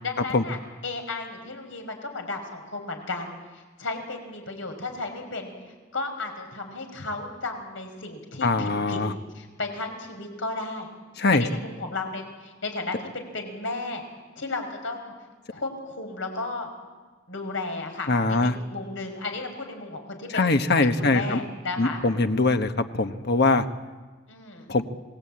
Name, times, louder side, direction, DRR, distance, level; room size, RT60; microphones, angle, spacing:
voice 1, 0.0-0.6 0.8-5.5 5.9-9.0 9.3-10.9 11.3-14.0 14.4-15.1 15.5-16.7 17.3-20.5 20.8-22.0 24.3-24.7, left 3 dB, 85° left, 4 dB, 5.2 m, -34 dB
voice 2, 8.4-9.1 11.2-11.5 18.1-18.6 20.3-21.4 21.8-23.6 24.7-24.8, left 3 dB, 60° left, 8 dB, 1.1 m, -22 dB
27.0 x 19.5 x 8.7 m, 1.4 s
head